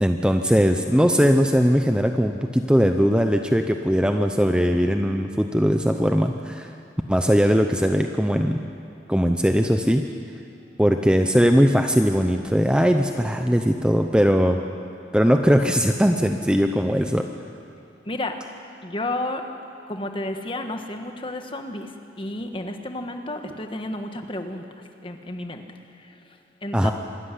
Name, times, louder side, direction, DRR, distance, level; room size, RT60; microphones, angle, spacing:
voice 1, 0.0-6.7 7.1-8.6 9.1-10.0 10.8-14.6 15.1-17.3 26.7-26.9, equal, 5° right, 5 dB, 0.7 m, -20 dB
voice 2, 18.0-18.4 18.8-19.5 19.9-24.7 25.0-26.9, left 1 dB, 30° left, 5 dB, 1.4 m, -32 dB
26.0 x 13.5 x 9.9 m, 2.5 s
head